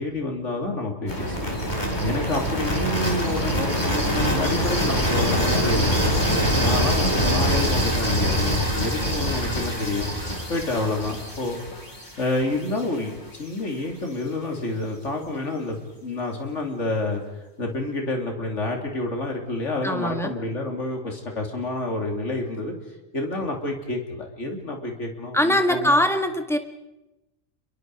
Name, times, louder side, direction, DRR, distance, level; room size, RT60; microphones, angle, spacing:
voice 1, 0.0-1.5 2.0-6.2 6.6-10.1 10.5-11.6 12.2-13.1 13.4-17.2 17.6-22.7 23.1-26.0, left 2 dB, 60° left, 2 dB, 3.4 m, -28 dB
sound 1, 1.1-13.0, equal, 30° left, 5.0 m, -24 dB
voice 2, 19.8-20.3 25.3-26.6, left 1 dB, ahead, 6 dB, 1.6 m, -22 dB
29.0 x 23.0 x 4.8 m, 0.99 s
omnidirectional pair, 1.4 m